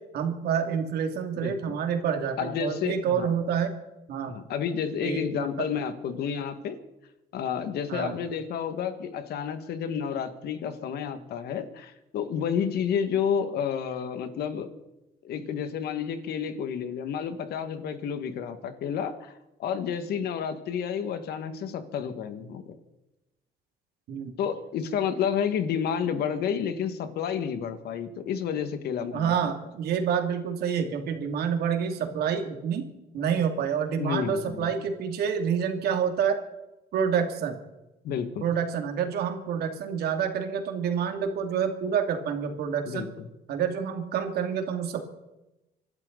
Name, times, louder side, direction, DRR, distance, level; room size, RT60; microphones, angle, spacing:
voice 1, 0.1-3.7 4.1-4.3 5.0-5.7 7.9-8.2 24.1-24.3 29.1-32.9 33.1-36.4 36.9-37.6 38.4-43.1 43.5-45.0, right 7 dB, 70° right, 5 dB, 2.6 m, -28 dB
voice 2, 1.4-1.8 2.4-3.3 4.3-6.8 7.3-14.7 15.2-19.3 19.6-22.8 24.4-29.5 34.0-34.7 38.0-38.5 42.9-43.3, left 7 dB, 70° left, 9 dB, 1.8 m, -30 dB
27.0 x 11.5 x 4.0 m, 0.96 s
cardioid pair, 110°, 17 cm